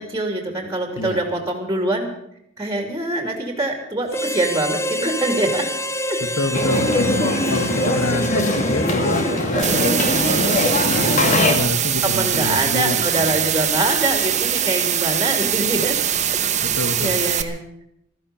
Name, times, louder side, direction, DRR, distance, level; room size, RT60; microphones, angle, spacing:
voice 1, 0.0-2.1 2.6-5.7 6.1-6.4 9.5-10.1 12.0-16.0 16.3-17.6, right 2 dB, 15° right, 4 dB, 2.8 m, -24 dB
Harmonica, 4.1-9.7, equal, 15° left, 0.7 m, -27 dB
voice 2, 6.3-9.9 10.8-13.3 16.6-17.3, left 2 dB, 70° left, 10 dB, 1.5 m, -27 dB
sound 1, 6.5-11.5, left 1 dB, 40° left, 2.3 m, -21 dB
sound 2, 9.6-17.4, right 10 dB, 35° right, 1.0 m, -22 dB
15.5 x 13.5 x 6.9 m, 0.77 s
head